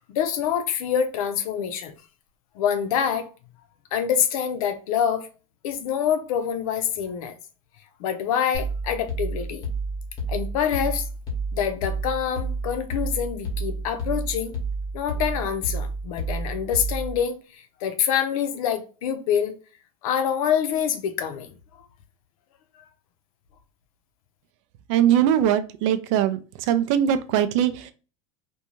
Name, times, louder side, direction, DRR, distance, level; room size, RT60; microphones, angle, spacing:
voice 1, 0.1-1.9 2.6-3.3 3.9-5.3 5.6-7.3 8.0-9.6 10.3-11.1 11.5-14.5 14.9-17.4 17.8-19.5 20.0-21.5, left 8 dB, 85° left, 0.6 m, -26 dB
sound 1, 8.5-17.2, right 2 dB, 20° left, 0.8 m, -30 dB
voice 2, 24.9-27.9, right 10 dB, 60° right, 0.4 m, -21 dB
2.5 x 2.2 x 2.9 m
supercardioid pair, 155°, 18 cm